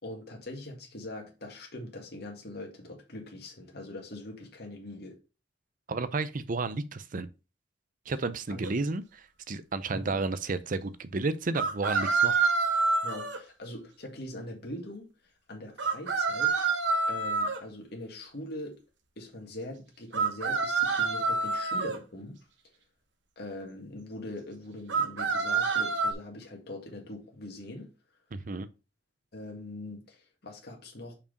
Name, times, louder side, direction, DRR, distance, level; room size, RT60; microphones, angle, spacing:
voice 1, 0.0-5.2 8.5-8.7 9.9-10.2 13.0-15.1 15.5-16.5 17.1-18.8 19.2-22.4 23.4-27.9 29.3-31.2, left 1 dB, 60° left, 1.9 m, -42 dB
voice 2, 5.9-7.3 8.1-12.5 28.3-28.7, right 3 dB, 50° right, 0.6 m, -32 dB
sound 1, 8.6-8.7 11.5-13.4 15.8-17.6 20.1-22.0 24.9-26.1, right 4 dB, 90° right, 1.1 m, -27 dB
5.6 x 4.7 x 5.1 m
head